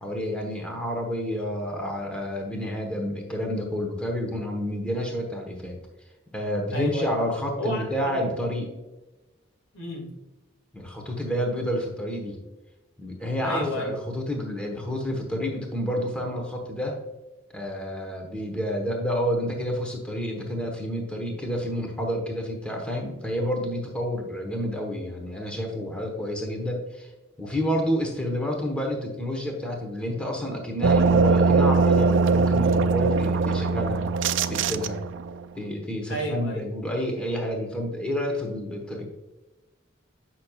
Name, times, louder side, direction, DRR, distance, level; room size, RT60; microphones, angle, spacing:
voice 1, 0.0-5.8 6.3-8.7 10.7-12.4 13.0-17.0 17.5-27.1 27.4-35.0 35.5-39.1, equal, 5° left, 0 dB, 1.0 m, -29 dB
voice 2, 6.7-7.1 7.6-8.3 9.7-10.1 13.4-14.0 36.1-36.7, equal, 80° left, 0 dB, 2.0 m, -31 dB
sound 1, 30.8-35.3, right 4 dB, 70° right, 0.4 m, -21 dB
8.4 x 5.9 x 2.3 m, 1.1 s
head